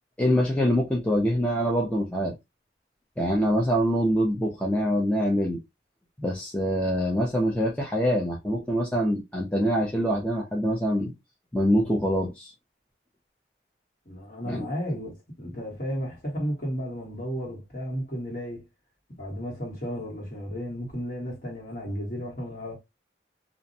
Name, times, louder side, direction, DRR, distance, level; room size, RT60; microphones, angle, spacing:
voice 1, 0.2-2.3 3.2-5.6 6.2-11.1 11.5-12.5 14.5-14.6, equal, 5° left, 0.4 m, -24 dB
voice 2, 14.0-18.6 19.2-22.8, equal, 50° left, 1.3 m, -33 dB
2.4 x 2.0 x 2.7 m
head